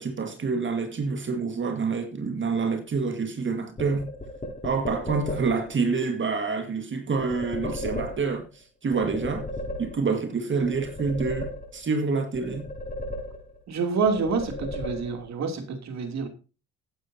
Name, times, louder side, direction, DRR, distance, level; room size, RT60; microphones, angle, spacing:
voice 1, 0.0-4.1 4.6-9.5 9.8-12.7, right 4 dB, 40° right, 1.7 m, -27 dB
sound 1, 3.8-5.7 7.2-8.6 8.9-10.3 10.6-12.0 12.3-13.7 14.1-15.4, left 1 dB, 30° left, 5.8 m, -35 dB
voice 2, 13.7-16.3, right 5 dB, 60° right, 3.0 m, -27 dB
15.5 x 9.7 x 2.8 m
supercardioid pair, 80°, 31 cm